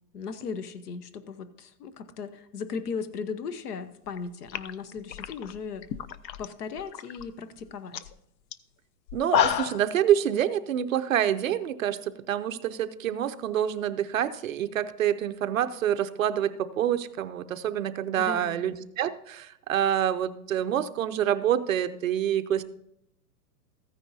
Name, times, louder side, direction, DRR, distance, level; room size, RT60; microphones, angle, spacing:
voice 1, 0.1-5.8 6.4-8.1 18.2-18.6, left 5 dB, 65° left, 12 dB, 1.0 m, -37 dB
sound 1, 4.1-4.2 4.5-6.5 6.8-7.2 7.6-7.7 7.9-8.1 8.5-8.6 9.1-9.9, left 10 dB, 85° left, 0.7 m, -29 dB
voice 2, 9.1-22.6, right 10 dB, 55° right, 10 dB, 0.6 m, -27 dB
14.5 x 9.8 x 2.7 m, 0.80 s
hypercardioid pair, 175°, 50 cm